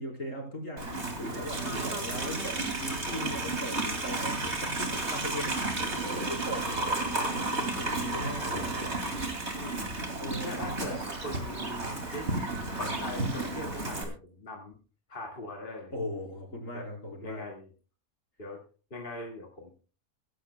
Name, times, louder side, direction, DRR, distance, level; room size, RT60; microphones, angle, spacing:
voice 1, 0.0-7.0 7.5-9.0 10.2-11.0 15.9-17.4, equal, 65° left, 1 dB, 4.7 m, -39 dB
Livestock farm animals working animals, 0.8-14.0, right 2 dB, 50° right, 2.9 m, -32 dB
voice 2, 1.6-2.1 5.9-6.2 7.0-7.1 9.5-10.0 10.4-12.3 12.7-14.7 15.1-15.9 16.7-16.9 17.2-17.7 18.4-18.6 18.9-19.7, left 2 dB, 40° left, 1 dB, 2.1 m, -41 dB
23.0 x 11.5 x 2.2 m, 0.36 s
omnidirectional pair, 1.5 m